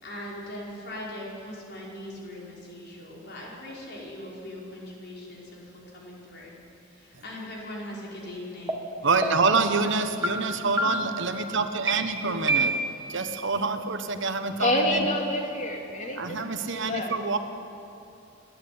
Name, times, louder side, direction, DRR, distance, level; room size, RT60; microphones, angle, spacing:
voice 1, 0.0-6.6 6.9-9.5 10.6-10.9, left 1 dB, 60° left, -4 dB, 5.5 m, -40 dB
sound 1, 8.7-8.8 9.2-9.6 10.2-10.3 10.8-11.2 11.9-12.0 12.5-13.1, right 2 dB, 15° right, 2.0 m, -26 dB
voice 2, 9.0-12.8 13.1-15.1 16.2-17.4, right 4 dB, 65° right, 8 dB, 1.3 m, -26 dB
voice 3, 14.6-16.4 16.7-17.1, left 1 dB, 40° left, 1 dB, 2.9 m, -27 dB
30.0 x 11.0 x 9.6 m, 2.7 s
head